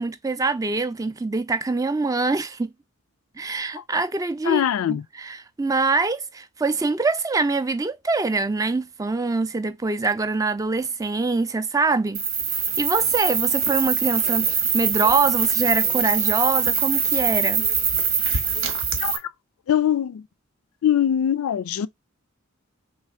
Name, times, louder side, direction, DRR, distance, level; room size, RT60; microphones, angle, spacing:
voice 1, 0.0-2.7 3.4-4.6 4.9-12.2 12.5-17.7, right 3 dB, 15° right, 0.3 m, -24 dB
voice 2, 4.5-5.0 19.0-19.2 19.7-20.2 20.8-21.9, left 10 dB, 85° left, 0.3 m, -22 dB
sound 1, 12.1-19.2, right 6 dB, 75° right, 1.1 m, -23 dB
3.3 x 3.1 x 4.7 m
head